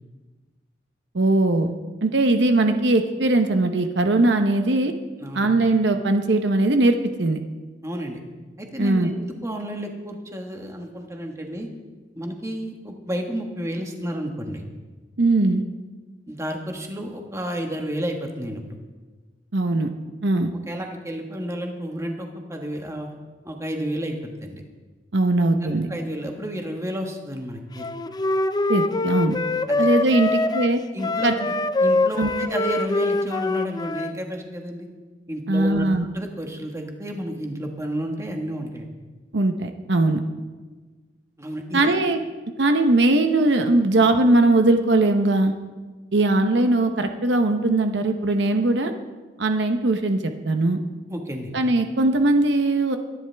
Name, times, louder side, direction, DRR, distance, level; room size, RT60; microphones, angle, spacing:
voice 1, 1.1-1.7 2.0-4.9 5.3-7.4 8.8-9.1 15.2-15.6 19.5-19.9 20.2-20.5 25.1-25.9 28.7-29.4 29.8-30.8 31.2-31.3 32.2-32.3 35.5-36.0 39.3-40.2 41.7-42.2 42.6-45.5 46.1-48.9 49.4-50.8 51.5-53.0, right 2 dB, 70° right, 6 dB, 0.9 m, -20 dB
voice 2, 5.2-5.5 7.8-8.2 8.6-11.7 12.1-14.6 16.3-18.6 20.7-23.1 23.4-24.6 25.6-27.9 29.7-29.9 30.9-31.5 31.8-34.9 35.3-38.9 41.4-41.9 51.1-51.5, equal, 15° right, 2 dB, 1.5 m, -31 dB
Wind instrument woodwind instrument, 27.8-34.2, left 2 dB, 25° left, 0.4 m, -24 dB
23.0 x 10.5 x 3.4 m, 1.3 s
head